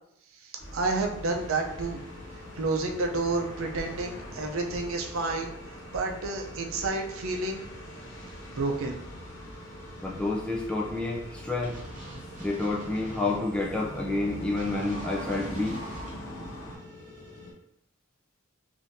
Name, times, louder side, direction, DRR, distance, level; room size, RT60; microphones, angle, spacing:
sound 1, 0.6-16.8, equal, 60° left, 0.9 m, -43 dB
sound 2, 0.6-17.5, equal, 35° left, 1.4 m, -48 dB
voice 1, 0.7-2.0 2.6-5.5 5.9-7.6 8.6-9.0, right 3 dB, 80° right, 2 dB, 0.5 m, -30 dB
voice 2, 10.0-11.8 12.4-15.8, left 2 dB, 5° left, -3 dB, 0.4 m, -29 dB
sound 3, 11.6-13.4 14.6-16.1, right 1 dB, 35° right, 0.9 m, -43 dB
3.6 x 2.6 x 2.6 m, 0.76 s
head